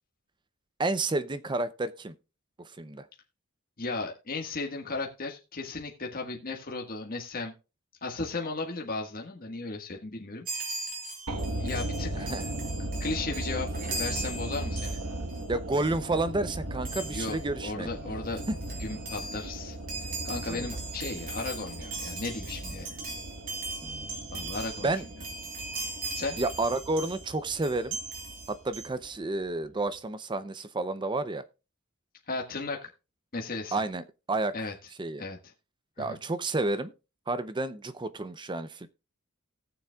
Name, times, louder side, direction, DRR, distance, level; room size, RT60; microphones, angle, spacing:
voice 1, 0.8-2.1 2.8-3.1 12.1-12.4 15.5-17.9 20.5-20.6 23.8-24.1 24.8-25.0 26.4-28.0 28.5-31.4 33.7-34.7 35.0-35.2 36.0-36.9 37.3-38.9, right 2 dB, 20° right, 13 dB, 0.5 m, -30 dB
voice 2, 3.8-7.5 8.0-10.8 11.6-12.3 13.0-13.7 14.0-15.0 17.1-18.4 18.8-19.8 20.2-23.0 24.3-24.9 26.1-26.4 32.3-32.9 33.3-33.8 34.5-34.7 35.2-35.4 36.0-36.2, left 3 dB, 40° left, 1 dB, 1.6 m, -35 dB
Chime, 10.4-15.4 15.7-15.9 16.8-17.4 18.0-18.1 18.3-27.3 27.6-28.9, right 3 dB, 40° right, 3.4 m, -39 dB
sound 1, 11.3-29.5 29.7-29.8, right 1 dB, 80° right, 1.4 m, -38 dB
18.5 x 7.0 x 2.3 m, 0.30 s
head